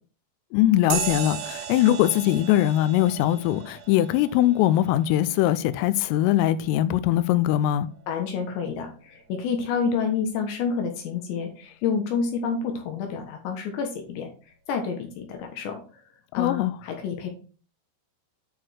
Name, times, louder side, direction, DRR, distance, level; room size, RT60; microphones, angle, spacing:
voice 1, 0.5-7.9 16.3-16.7, left 13 dB, 85° left, 3.2 m, -21 dB
sound 1, 0.9-8.8, right 9 dB, 75° right, 4.0 m, -37 dB
voice 2, 8.1-14.3 14.7-15.8 16.3-17.3, left 5 dB, 70° left, 3.3 m, -29 dB
9.2 x 4.7 x 6.3 m
omnidirectional pair, 5.9 m